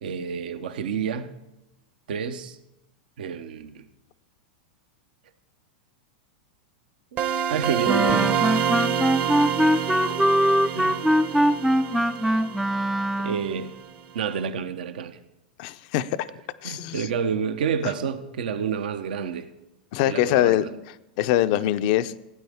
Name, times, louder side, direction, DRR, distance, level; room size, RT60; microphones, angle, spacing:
voice 1, 0.0-1.4 2.1-2.6 3.2-3.8 7.5-8.4 10.7-11.0 13.2-13.7 14.1-15.2 16.6-19.5 20.0-20.7, right 7 dB, 75° right, 0.9 m, -29 dB
sound 1, 7.2-13.8, right 8 dB, 40° right, 0.9 m, -27 dB
Wind instrument woodwind instrument, 7.9-13.5, equal, ahead, 0.4 m, -22 dB
voice 2, 15.6-16.3 16.6-17.0 19.9-20.6 21.2-22.1, left 13 dB, 55° left, 0.6 m, -23 dB
16.5 x 9.1 x 3.6 m
hypercardioid pair, 110°, 5 cm